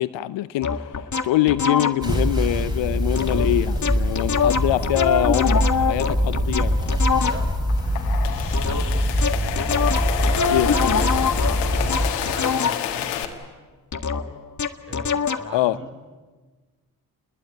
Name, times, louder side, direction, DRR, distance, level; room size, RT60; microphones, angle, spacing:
voice 1, 0.0-7.0 10.5-11.1 15.5-15.8, left 15 dB, 65° left, 0.9 m, -24 dB
sound 1, 0.6-2.2 3.2-3.5 3.8-7.7 8.5-13.0 13.9-15.5, left 5 dB, 35° left, 1.8 m, -25 dB
sound 2, 2.0-12.1, equal, 10° right, 6.5 m, -23 dB
voice 2, 7.1-7.5 7.8-7.9 8.3-9.2 10.1-11.2 11.7-13.4 14.8-15.9, equal, 25° right, 6.3 m, -39 dB
sound 3, 7.7-13.2, left 10 dB, 90° left, 1.8 m, -29 dB
28.5 x 21.5 x 9.4 m
hypercardioid pair, 40°, 48 cm